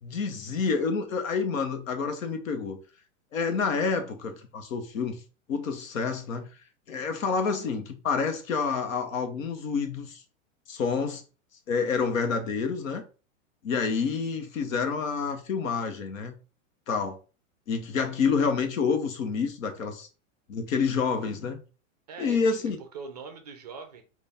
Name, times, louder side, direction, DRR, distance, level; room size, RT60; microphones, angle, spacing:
voice 1, 0.0-2.8 3.3-5.2 5.5-6.4 6.9-10.2 10.7-11.2 11.7-13.0 13.6-16.3 16.9-17.2 17.7-20.1 20.5-21.6 22.2-22.8, left 5 dB, 75° left, 1.0 m, -28 dB
voice 2, 22.1-24.0, right 5 dB, 35° right, 0.4 m, -42 dB
4.3 x 2.5 x 3.4 m
supercardioid pair, 180°, 40 cm